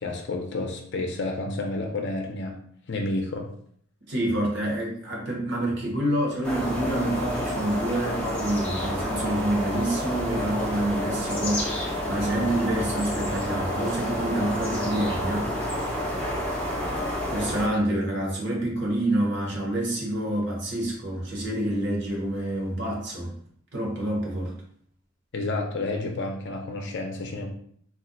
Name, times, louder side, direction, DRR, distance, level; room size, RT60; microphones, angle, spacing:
voice 1, 0.0-2.6 2.9-3.5 17.9-18.3 25.3-27.5, left 2 dB, 55° left, 2 dB, 0.5 m, -30 dB
voice 2, 4.0-15.9 17.3-23.3 23.7-24.5, right 1 dB, 55° right, -1 dB, 0.9 m, -27 dB
sound 1, 6.4-17.7, equal, 5° left, 0.5 m, -29 dB
2.4 x 2.2 x 3.8 m, 0.62 s
head